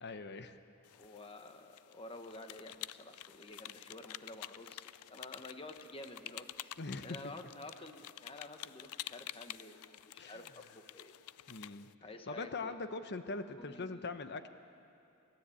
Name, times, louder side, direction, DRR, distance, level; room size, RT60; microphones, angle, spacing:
voice 1, 0.0-0.6 6.8-7.3 10.2-10.4 11.5-11.9 12.3-14.5, left 3 dB, 50° left, 9 dB, 1.0 m, -42 dB
sound 1, 0.8-11.9, left 14 dB, 75° left, 0.4 m, -49 dB
voice 2, 1.0-6.7 7.0-11.1 12.0-12.8 13.6-14.1, left 2 dB, 25° left, 6 dB, 1.3 m, -50 dB
28.5 x 12.5 x 8.6 m, 2.6 s
head